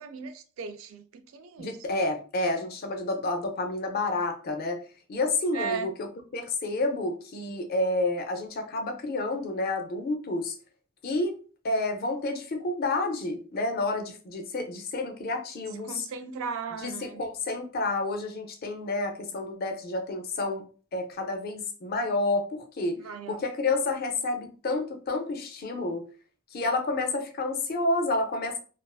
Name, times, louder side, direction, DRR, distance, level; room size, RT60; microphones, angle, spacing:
voice 1, 0.0-1.8 5.5-5.9 15.8-17.2 23.0-23.4, right 6 dB, 80° right, 0.3 m, -36 dB
voice 2, 1.6-4.8 5.1-10.5 11.0-11.3 11.6-16.1 16.8-20.6 20.9-23.0 23.3-26.1 26.5-28.6, left 2 dB, 50° left, 0.4 m, -29 dB
2.4 x 2.3 x 2.3 m
head